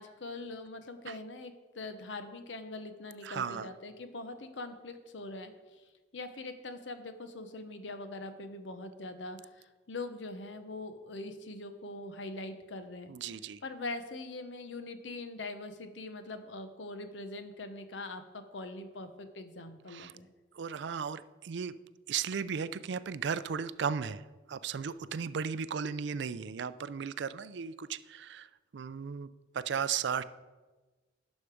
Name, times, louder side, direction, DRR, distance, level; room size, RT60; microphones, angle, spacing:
voice 1, 0.0-5.8 6.1-13.1 13.6-20.3, left 2 dB, 80° left, 9 dB, 0.9 m, -42 dB
voice 2, 3.2-3.7 13.1-13.6 19.9-20.1 20.6-21.7 22.1-24.2 24.5-29.3 29.5-30.2, right 6 dB, 70° right, 15 dB, 0.4 m, -35 dB
11.5 x 6.4 x 4.9 m, 1.3 s
head